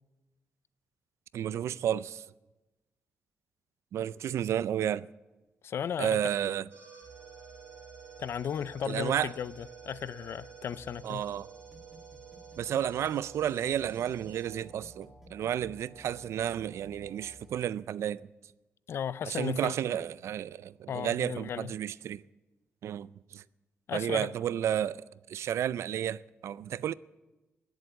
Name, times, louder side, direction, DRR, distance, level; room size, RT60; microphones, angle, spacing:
voice 1, 1.3-2.2 3.9-5.1 6.0-6.7 8.9-9.3 11.0-11.5 12.6-18.3 19.2-22.2 22.8-23.4 23.9-25.0 25.3-26.9, right 10 dB, 85° right, 0.4 m, -32 dB
voice 2, 5.6-6.2 8.2-11.2 18.9-20.0 20.9-21.7 23.9-24.3, left 8 dB, 65° left, 0.4 m, -35 dB
sound 1, 6.7-17.5, right 5 dB, 50° right, 5.3 m, -50 dB
sound 2, 11.7-14.3 14.6-17.5, right 1 dB, 5° right, 1.6 m, -57 dB
18.5 x 7.9 x 8.2 m
wide cardioid pair, 135°, 5 cm